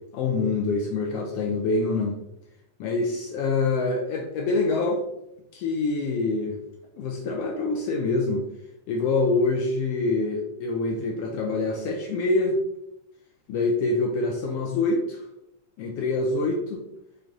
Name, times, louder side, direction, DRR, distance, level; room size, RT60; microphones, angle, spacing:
voice 1, 0.1-2.2 2.8-5.0 5.5-6.6 7.0-8.5 8.9-12.6 13.5-15.2 15.8-16.8, left 3 dB, 85° left, 0 dB, 1.4 m, -25 dB
6.0 x 3.2 x 2.6 m, 0.82 s
omnidirectional pair, 3.3 m